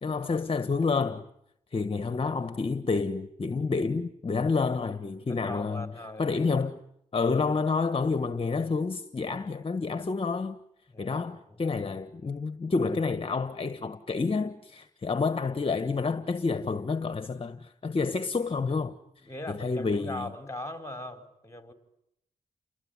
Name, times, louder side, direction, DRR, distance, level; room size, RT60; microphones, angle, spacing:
voice 1, 0.0-1.3 1.7-5.9 6.2-6.8 7.1-10.6 11.0-18.9 19.5-20.3, left 4 dB, 45° left, 1.4 m, -29 dB
voice 2, 5.3-6.6 10.9-11.6 19.2-21.7, left 1 dB, 20° left, 5.1 m, -40 dB
29.5 x 20.5 x 9.9 m
cardioid pair, 55°, 14 cm